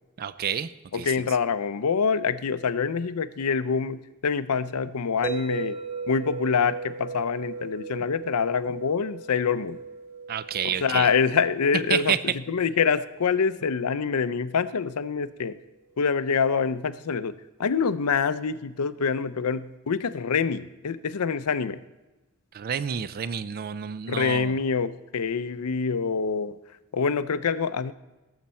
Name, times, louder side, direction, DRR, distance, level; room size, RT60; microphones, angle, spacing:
voice 1, 0.2-1.1 10.3-11.1 11.9-12.2 22.5-24.5, right 8 dB, 45° right, 15 dB, 0.4 m, -29 dB
voice 2, 0.9-5.8 6.1-9.8 10.6-15.5 16.0-17.3 17.6-21.8 24.1-26.6 26.9-27.9, left 5 dB, 85° left, 13 dB, 0.5 m, -26 dB
sound 1, 5.2-15.3, right 4 dB, 10° right, 1.3 m, -39 dB
18.0 x 7.3 x 4.3 m, 1.1 s
head